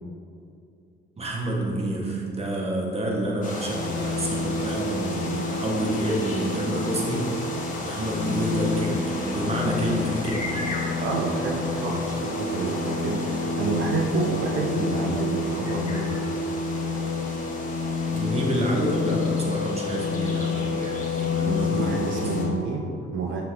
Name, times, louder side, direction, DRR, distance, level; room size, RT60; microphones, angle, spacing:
voice 1, 1.2-7.3 7.8-10.7 18.1-22.2, right 1 dB, 30° right, -1 dB, 1.6 m, -28 dB
sound 1, 3.4-22.5, left 2 dB, 40° left, 1.7 m, -36 dB
sound 2, 3.5-22.6, left 4 dB, 85° left, 0.8 m, -29 dB
voice 2, 11.0-16.2 21.4-23.4, right 3 dB, 80° right, 0 dB, 0.8 m, -28 dB
7.3 x 6.1 x 3.8 m, 2.6 s
cardioid pair, 90°, 20 cm